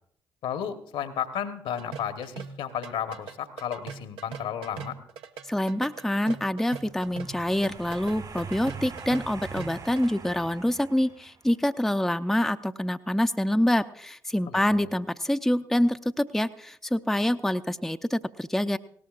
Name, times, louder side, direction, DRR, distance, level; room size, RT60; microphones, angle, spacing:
voice 1, 0.4-5.0 14.5-14.9, left 9 dB, 70° left, 9 dB, 1.1 m, -33 dB
sound 1, 1.8-10.1, right 6 dB, 65° right, 0.8 m, -40 dB
voice 2, 5.5-18.8, left 1 dB, 5° left, 9 dB, 0.6 m, -26 dB
sound 2, 6.8-11.5, right 5 dB, 45° right, 1.9 m, -43 dB
20.0 x 18.0 x 2.5 m, 0.68 s
hypercardioid pair, 40°, 10 cm